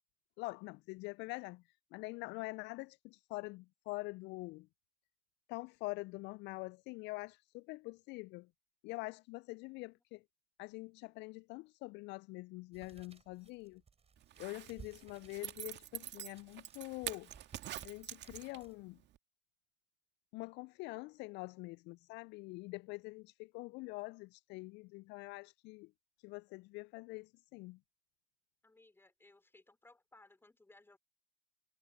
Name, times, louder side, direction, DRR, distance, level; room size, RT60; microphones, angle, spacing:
voice 1, 0.4-1.6 1.9-4.7 5.5-8.5 8.8-10.2 10.6-13.8 14.4-17.3 17.8-19.0 20.3-25.9 26.2-27.8, left 24 dB, 35° left, 0.5 m, -45 dB
sound 1, 12.7-18.8, right 6 dB, 20° right, 7.2 m, -60 dB
Zipper (clothing), 14.2-18.8 19.2-19.3, right 13 dB, 35° right, 2.2 m, -46 dB
voice 2, 28.6-31.0, left 2 dB, 5° left, 3.7 m, -63 dB
figure-of-eight pair, 90°, 30 cm